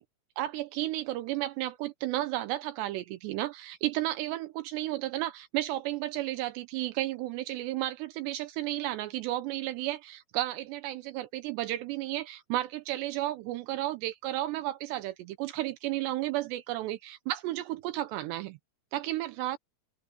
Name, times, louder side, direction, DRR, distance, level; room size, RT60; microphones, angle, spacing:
voice 1, 0.4-18.6 18.9-19.6, right 15 dB, 80° right, 2.9 m, -33 dB
omnidirectional pair, 5.1 m